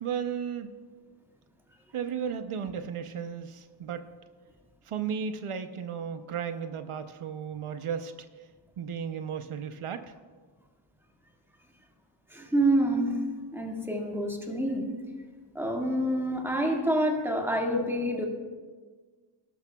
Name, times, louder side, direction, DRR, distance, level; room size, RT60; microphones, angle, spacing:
voice 1, 0.0-0.7 1.9-4.1 4.9-8.1 8.8-10.1, right 7 dB, 90° right, 9 dB, 0.7 m, -34 dB
voice 2, 12.3-13.2 13.5-14.9 15.6-18.3, right 1 dB, 5° right, 0 dB, 1.9 m, -27 dB
19.5 x 12.0 x 2.3 m, 1.5 s
wide cardioid pair, 90°, 49 cm